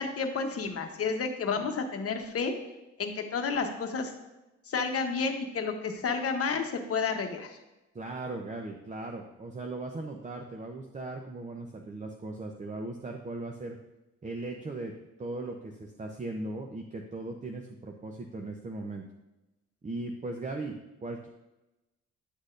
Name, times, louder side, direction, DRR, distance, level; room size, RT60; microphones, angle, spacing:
voice 1, 0.0-2.5 3.0-4.1 4.7-7.6, left 5 dB, 50° left, 5 dB, 1.0 m, -31 dB
voice 2, 7.9-13.8 14.2-14.9 15.2-19.0 19.8-21.3, right 2 dB, 25° right, 2 dB, 0.7 m, -38 dB
9.8 x 6.3 x 2.6 m, 0.99 s
cardioid pair, 90°, 30 cm